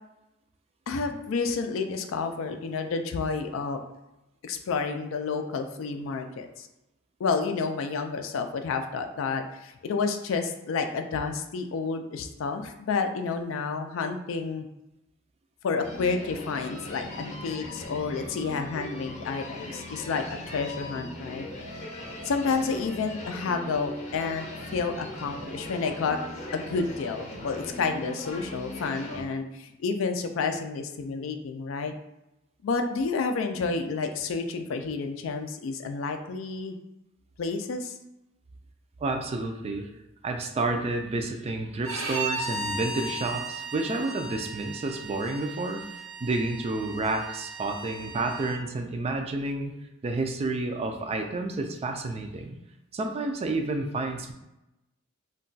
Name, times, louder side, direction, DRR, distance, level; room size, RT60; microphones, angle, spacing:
voice 1, 0.9-3.8 4.4-6.7 7.2-14.7 15.6-20.2 20.5-21.5 22.2-26.2 26.5-31.9 32.6-36.8 37.4-37.9, left 4 dB, 75° left, 6 dB, 0.4 m, -30 dB
sound 1, 15.8-29.2, left 1 dB, 35° left, 0.6 m, -39 dB
voice 2, 39.0-39.9 40.2-49.7 50.0-52.6 52.9-54.3, right 2 dB, 30° right, 4 dB, 0.3 m, -30 dB
Bowed string instrument, 41.8-48.6, right 2 dB, 80° right, 0.6 m, -36 dB
2.3 x 2.2 x 3.8 m, 0.94 s
head